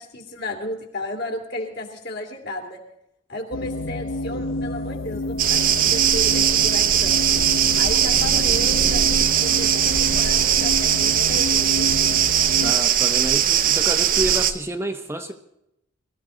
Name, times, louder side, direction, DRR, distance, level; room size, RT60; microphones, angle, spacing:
voice 1, 0.0-2.8 3.3-7.2 7.8-11.9, left 1 dB, 55° left, 2 dB, 2.9 m, -33 dB
sound 1, 3.5-12.7, left 2 dB, 75° left, 0.7 m, -29 dB
sound 2, 5.4-14.5, right 9 dB, 45° right, 0.8 m, -19 dB
voice 2, 12.6-15.3, right 1 dB, 10° right, 5 dB, 0.8 m, -29 dB
21.5 x 14.0 x 3.9 m, 0.82 s
head